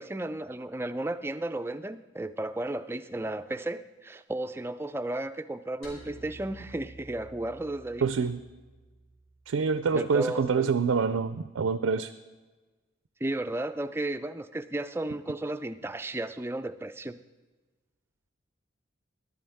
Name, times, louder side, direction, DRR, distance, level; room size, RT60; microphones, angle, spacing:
voice 1, 0.0-8.0 9.9-10.7 13.2-17.2, right 2 dB, 10° right, 10 dB, 0.3 m, -34 dB
sound 1, 5.8-10.2, right 2 dB, 80° left, 4.3 m, -51 dB
voice 2, 8.0-8.4 9.5-12.1, right 5 dB, 90° right, 12 dB, 0.4 m, -26 dB
14.5 x 11.5 x 3.5 m, 1.3 s
head